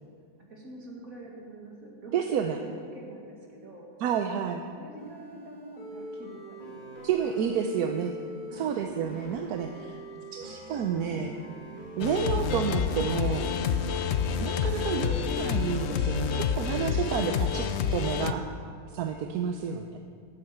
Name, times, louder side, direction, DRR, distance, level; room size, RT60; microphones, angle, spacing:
voice 1, 0.5-3.9 4.3-7.4 7.8-8.0 8.5-8.7, right 2 dB, 65° right, -1 dB, 2.5 m, -46 dB
voice 2, 2.1-2.6 4.0-4.6 7.0-8.1 8.5-10.0 10.3-11.4 12.0-13.5 14.4-18.5 18.9-20.0, right 8 dB, 85° right, 4 dB, 1.2 m, -30 dB
sound 1, 5.0-16.9, right 1 dB, 25° left, 2.6 m, -43 dB
sound 2, 12.0-18.3, left 7 dB, 60° left, 0.7 m, -28 dB
13.0 x 8.6 x 6.8 m, 2.2 s
omnidirectional pair, 1.6 m